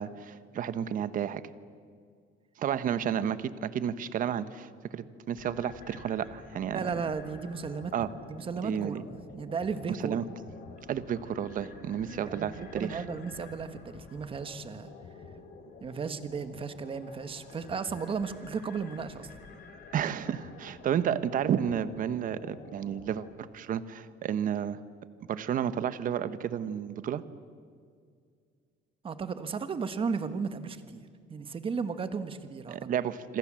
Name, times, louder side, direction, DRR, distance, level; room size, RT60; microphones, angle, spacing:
voice 1, 0.0-1.4 2.6-6.8 7.9-8.1 8.6-9.0 9.9-10.2 10.9-13.0 19.9-24.8 25.3-27.2 32.7-33.4, right 9 dB, 45° right, 13 dB, 1.1 m, -31 dB
sound 1, 5.3-23.3, left 5 dB, 50° left, 3.7 m, -50 dB
voice 2, 6.7-7.9 8.2-10.3 12.0-14.9 15.8-19.3 29.0-32.8, right 5 dB, 25° right, 10 dB, 1.4 m, -35 dB
27.0 x 26.0 x 7.6 m, 2.1 s
cardioid pair, 160°, 20 cm